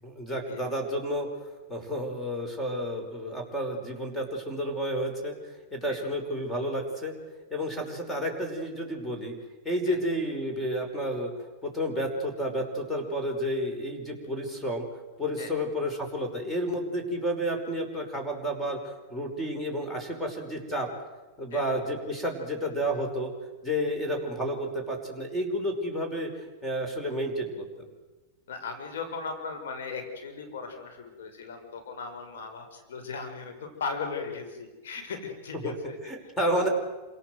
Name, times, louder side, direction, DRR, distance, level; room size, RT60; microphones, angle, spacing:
voice 1, 0.0-1.3 1.7-5.3 5.7-7.1 7.5-9.4 9.6-11.3 11.6-14.9 15.2-20.9 21.4-23.3 23.6-27.7 35.6-35.7 36.0-36.7, equal, 10° left, 4 dB, 5.4 m, -31 dB
voice 2, 28.5-36.0 36.4-36.6, left 4 dB, 85° left, 6 dB, 5.7 m, -37 dB
27.5 x 18.0 x 7.9 m, 1.2 s
hypercardioid pair, 130°, 0 cm